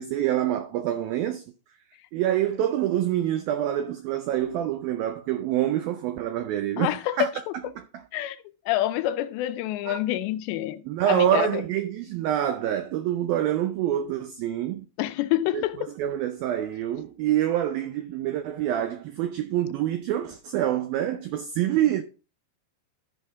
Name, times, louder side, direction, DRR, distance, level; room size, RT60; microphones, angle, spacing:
voice 1, 0.0-1.4 2.1-7.3 7.8-7.9 9.9-10.0 10.9-14.9 15.5-15.6 16.0-22.0, right 11 dB, 85° right, 2.1 m, -26 dB
voice 2, 6.8-7.2 8.1-11.6 15.0-15.9, left 14 dB, 85° left, 2.8 m, -28 dB
14.0 x 5.5 x 3.6 m
omnidirectional pair, 5.0 m